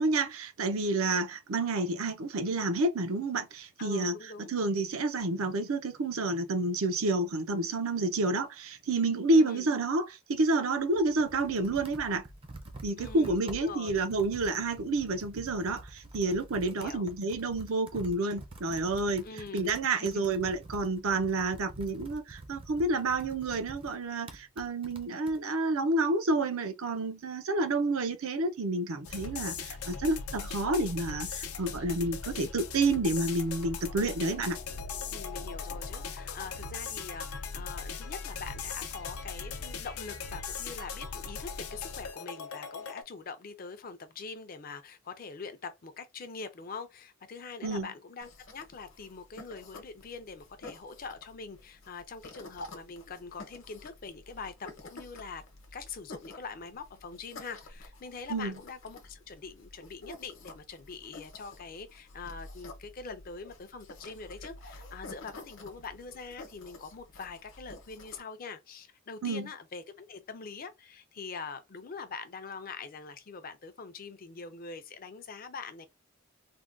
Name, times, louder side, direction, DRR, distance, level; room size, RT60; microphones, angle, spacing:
voice 1, 0.0-12.2 12.8-19.2 19.5-34.6 47.6-47.9 58.3-58.5 69.2-69.5, right 2 dB, 75° right, 0.6 m, -29 dB
voice 2, 3.8-4.5 9.3-9.7 13.0-14.0 16.6-17.1 19.2-20.3 35.1-55.4 55.7-75.9, left 4 dB, 40° left, 0.5 m, -44 dB
Computer keyboard, 10.8-25.4, right 2 dB, 25° right, 0.5 m, -48 dB
sound 1, 29.0-43.0, left 5 dB, 85° left, 0.6 m, -39 dB
sound 2, 48.2-68.2, left 2 dB, 60° left, 0.9 m, -50 dB
3.4 x 2.2 x 2.5 m
head